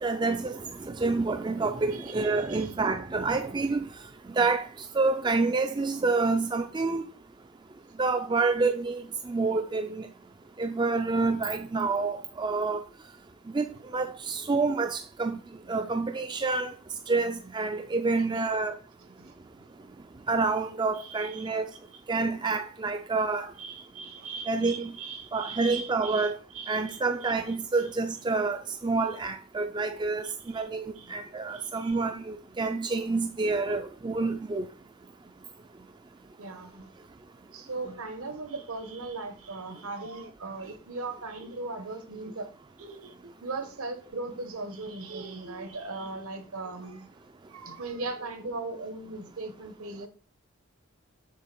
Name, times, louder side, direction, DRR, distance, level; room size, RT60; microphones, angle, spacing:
voice 1, 0.0-3.9 4.4-4.6 4.9-7.0 8.0-10.0 10.6-12.8 13.5-13.6 13.9-15.4 15.7-16.7 17.1-18.7 20.3-21.6 22.1-23.5 24.5-24.9 25.3-26.4 26.7-30.2 30.5-30.8 31.1-34.7, right 3 dB, 20° right, 0.3 m, -28 dB
voice 2, 1.9-2.7 18.2-18.5 19.2-19.3 20.9-21.5 21.9-22.0 23.6-27.5 30.2-30.7 30.9-31.2 31.5-32.0 36.4-36.9 37.5-42.5 42.8-47.1 47.5-50.1, right 3 dB, 75° right, 1.2 m, -39 dB
7.5 x 3.3 x 6.1 m
head